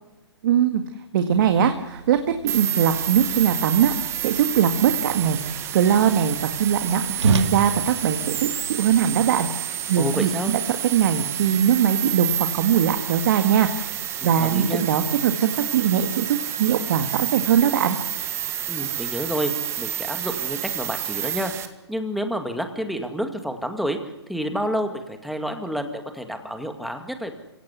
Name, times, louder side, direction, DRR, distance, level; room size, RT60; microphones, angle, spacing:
voice 1, 0.4-0.8 1.1-2.2 2.5-12.3 12.5-18.0, right 8 dB, 50° right, 7 dB, 1.9 m, -21 dB
Whoosh swoosh swish, 1.3-9.1, right 2 dB, 85° right, 3.1 m, -33 dB
sound 1, 2.5-21.7, right 10 dB, 20° right, 1.6 m, -29 dB
voice 2, 10.0-10.5 14.2-14.8 18.7-19.5 19.8-21.5 21.9-24.0 24.3-27.3, equal, ahead, 6 dB, 2.1 m, -29 dB
27.0 x 17.5 x 8.3 m, 1.0 s
hypercardioid pair, 135°, 14 cm